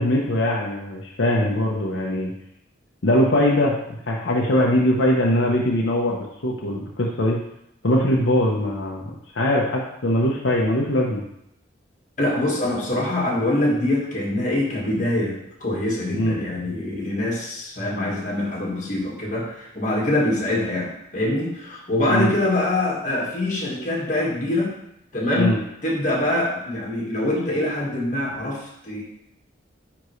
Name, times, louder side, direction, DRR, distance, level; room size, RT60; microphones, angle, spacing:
voice 1, 0.0-2.3 3.0-3.8 4.1-7.4 7.8-9.0 9.3-11.2 16.1-16.4 22.1-22.3 25.3-25.6, left 1 dB, 75° left, -2 dB, 0.9 m, -21 dB
voice 2, 12.2-24.8 25.1-29.0, left 1 dB, 40° left, -3 dB, 1.5 m, -24 dB
9.7 x 3.6 x 3.2 m, 0.77 s
head